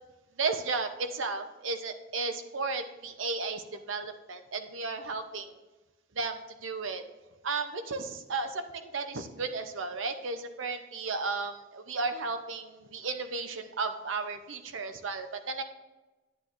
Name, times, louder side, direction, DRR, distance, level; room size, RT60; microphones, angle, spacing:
voice 1, 0.4-5.5 6.1-7.0 7.4-15.6, right 4 dB, 85° right, 8 dB, 0.7 m, -34 dB
10.5 x 8.9 x 2.6 m, 1.1 s
head